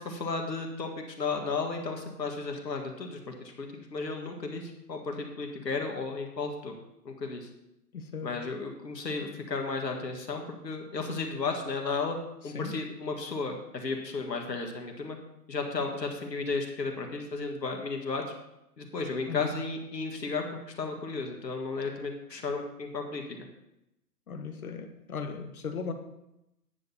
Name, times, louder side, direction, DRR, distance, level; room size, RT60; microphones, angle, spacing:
voice 1, 0.0-6.7 7.1-7.5 8.2-12.2 12.4-15.2 15.5-18.2 18.8-23.2, left 4 dB, 85° left, 3 dB, 1.9 m, -34 dB
voice 2, 7.9-8.4 12.5-12.7 19.3-19.5 24.3-25.9, left 5 dB, 60° left, 6 dB, 1.4 m, -37 dB
9.6 x 4.2 x 7.1 m, 0.87 s
hypercardioid pair, 160°, 48 cm